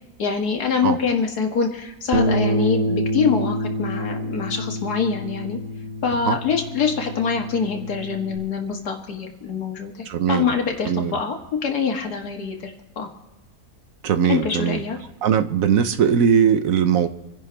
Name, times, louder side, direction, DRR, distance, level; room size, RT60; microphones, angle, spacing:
voice 1, 0.2-5.6 6.0-11.4 11.6-13.1 14.3-15.0, left 5 dB, 75° left, 3 dB, 2.1 m, -24 dB
Bass guitar, 2.1-8.4, equal, 30° right, 1.9 m, -27 dB
voice 2, 10.1-10.5 10.8-11.2 14.0-14.8 15.2-17.1, right 8 dB, 65° right, 11 dB, 1.2 m, -20 dB
27.0 x 11.0 x 3.4 m, 1.1 s
omnidirectional pair, 1.7 m